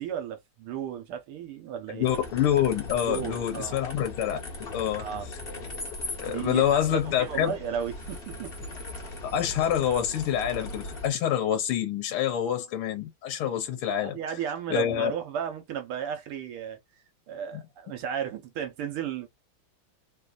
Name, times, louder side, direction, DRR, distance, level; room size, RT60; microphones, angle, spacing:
voice 1, 0.0-2.1 3.0-3.8 5.0-5.3 6.3-6.6 6.9-8.5 14.0-16.8 17.3-19.3, right 8 dB, 80° right, 1.8 m, -34 dB
voice 2, 1.9-5.1 6.2-7.5 9.2-14.2 14.7-15.1 17.5-17.6, left 10 dB, 80° left, 1.6 m, -27 dB
sound 1, 2.0-11.1, left 2 dB, 30° left, 1.3 m, -39 dB
3.8 x 2.6 x 2.4 m
omnidirectional pair, 2.4 m